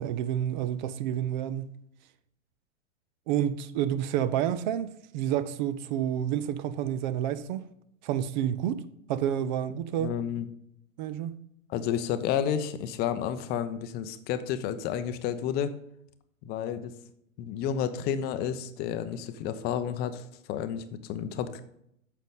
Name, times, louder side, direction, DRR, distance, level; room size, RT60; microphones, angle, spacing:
voice 1, 0.0-1.6 3.3-7.7 8.0-8.8 9.1-10.1 11.0-11.3, right 10 dB, 35° right, 0.6 m, -29 dB
voice 2, 10.0-10.5 11.7-15.7 16.4-17.0 17.4-21.6, left 9 dB, 25° left, 0.6 m, -31 dB
9.0 x 6.6 x 3.7 m
figure-of-eight pair, 100°, 40 cm